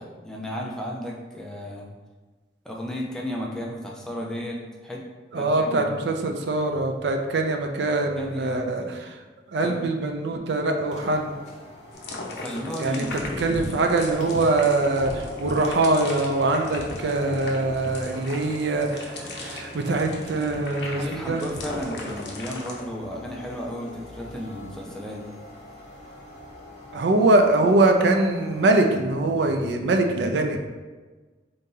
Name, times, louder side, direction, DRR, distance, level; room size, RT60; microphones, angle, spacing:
voice 1, 0.0-1.9 2.6-5.1 5.3-6.0 8.1-9.0 9.6-9.9 12.3-13.2 20.9-25.2, equal, 5° left, -2 dB, 0.4 m, -34 dB
voice 2, 5.3-9.1 9.5-11.3 12.8-13.0 13.4-21.4 26.9-30.6, right 2 dB, 70° right, 4 dB, 0.4 m, -23 dB
sound 1, 10.8-29.1, left 1 dB, 40° left, 0.9 m, -43 dB
sound 2, 11.9-22.8, left 2 dB, 65° left, 0.6 m, -37 dB
3.8 x 2.7 x 3.8 m, 1.3 s
head